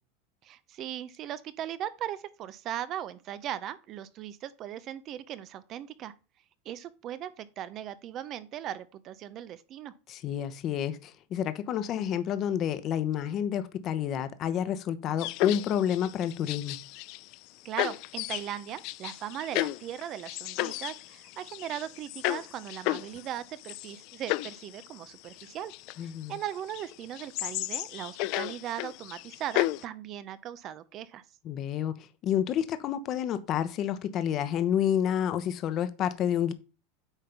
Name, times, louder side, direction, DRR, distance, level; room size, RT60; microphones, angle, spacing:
voice 1, 0.4-6.1 6.6-9.9 17.6-25.7 26.0-31.2, right 11 dB, 40° right, 0.7 m, -38 dB
voice 2, 10.1-16.8 26.0-26.4 31.4-31.9 32.2-36.5, left 9 dB, 40° left, 1.0 m, -29 dB
sound 1, 15.2-17.4 17.8-29.8, left 19 dB, 55° left, 0.4 m, -34 dB
9.0 x 3.7 x 5.9 m
supercardioid pair, 130°, 0 cm